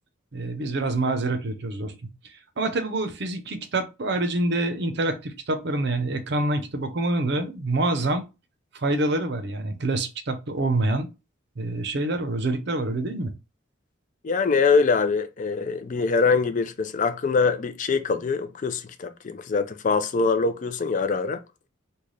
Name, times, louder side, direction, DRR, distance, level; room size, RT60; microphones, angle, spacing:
voice 1, 0.3-8.2 8.7-11.1 11.6-13.3, right 2 dB, 55° right, 0.6 m, -26 dB
voice 2, 14.2-21.4, left 4 dB, 40° left, 0.3 m, -23 dB
3.2 x 2.2 x 3.8 m
head